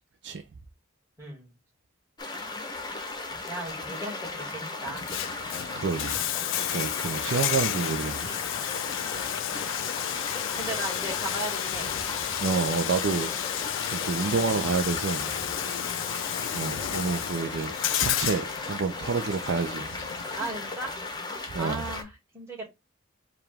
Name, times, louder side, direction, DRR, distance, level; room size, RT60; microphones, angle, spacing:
voice 1, 1.2-1.5 3.5-5.1 10.6-11.9 15.7-16.1 20.4-21.0 21.6-22.8, right 2 dB, 15° right, 1.9 m, -37 dB
sound 1, 2.2-22.0, left 3 dB, 20° left, 0.8 m, -36 dB
Bathtub (filling or washing), 4.9-20.8, left 11 dB, 65° left, 0.3 m, -32 dB
voice 2, 5.7-6.2 6.6-8.3 12.4-13.3 13.8-15.4 16.5-20.0 21.5-21.8, right 4 dB, 55° right, 0.4 m, -29 dB
4.8 x 2.4 x 3.3 m
head